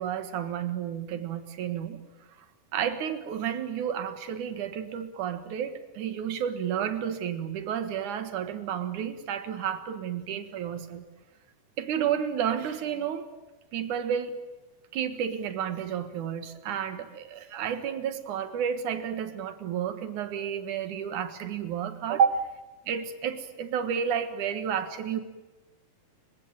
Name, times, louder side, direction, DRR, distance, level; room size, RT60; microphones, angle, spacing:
voice 1, 0.0-2.0 2.7-11.0 11.8-13.3 13.7-14.3 14.9-22.5 22.9-25.2, right 8 dB, 75° right, 10 dB, 2.9 m, -31 dB
30.0 x 16.0 x 9.0 m, 1.2 s
omnidirectional pair, 3.6 m